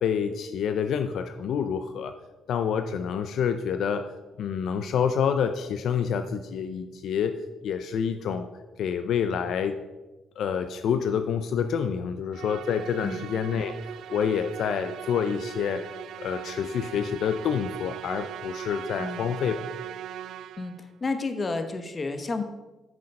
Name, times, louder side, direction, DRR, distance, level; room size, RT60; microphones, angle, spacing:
voice 1, 0.0-2.1 2.5-4.1 4.4-7.4 7.6-8.5 8.8-9.8 10.4-13.7 14.1-15.9 16.2-19.6, left 7 dB, 70° left, 9 dB, 0.5 m, -27 dB
Musical instrument, 12.3-20.9, right 10 dB, 75° right, 0.3 m, -39 dB
voice 2, 20.6-22.4, left 3 dB, 35° left, 8 dB, 1.1 m, -31 dB
8.8 x 6.3 x 5.4 m, 1.2 s
cardioid pair, 90°, 0 cm